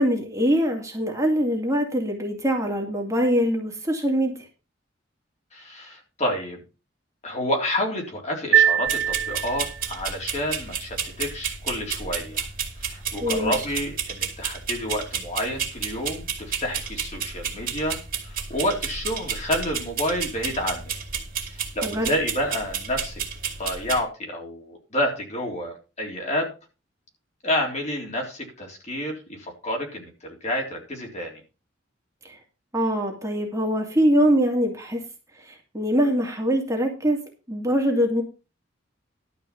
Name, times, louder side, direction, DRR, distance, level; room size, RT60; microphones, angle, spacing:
voice 1, 0.0-4.3 13.2-13.5 21.8-22.1 32.2-32.4 32.7-35.0 35.4-37.2 37.5-38.2, equal, 15° right, 0 dB, 2.4 m, -23 dB
voice 2, 5.5-6.6 7.2-12.4 12.8-18.0 18.2-20.9 21.5-23.2 23.6-26.5 27.4-31.4, left 1 dB, 35° left, 0 dB, 3.8 m, -29 dB
sound 1, 8.5-10.0, right 9 dB, 80° right, 1.3 m, -22 dB
sound 2, 8.9-24.0, right 7 dB, 50° right, 2.8 m, -32 dB
12.5 x 5.1 x 7.2 m, 0.32 s
head